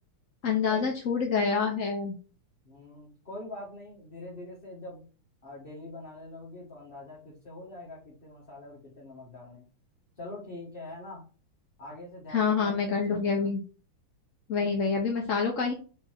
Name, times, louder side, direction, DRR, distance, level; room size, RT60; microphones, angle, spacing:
voice 1, 0.4-2.1 12.3-13.6 14.5-15.7, left 5 dB, 55° left, 1 dB, 0.9 m, -27 dB
voice 2, 2.6-5.1 5.4-9.7 10.2-11.3 11.8-13.5 14.6-14.9, left 2 dB, 30° left, -5 dB, 1.5 m, -44 dB
5.4 x 4.4 x 4.6 m, 0.36 s
omnidirectional pair, 2.4 m